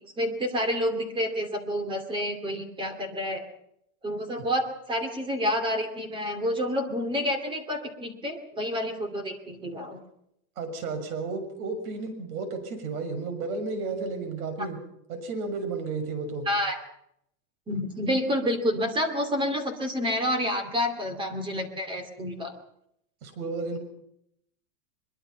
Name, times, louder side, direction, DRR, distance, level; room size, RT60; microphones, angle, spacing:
voice 1, 0.0-3.4 4.0-10.0 14.6-14.7 16.5-16.8 17.7-22.5, equal, 10° right, 7 dB, 2.6 m, -29 dB
voice 2, 10.6-14.8 15.1-16.5 23.2-23.8, right 4 dB, 70° right, 8 dB, 6.6 m, -32 dB
22.5 x 22.5 x 5.7 m, 0.74 s
supercardioid pair, 170°, 45 cm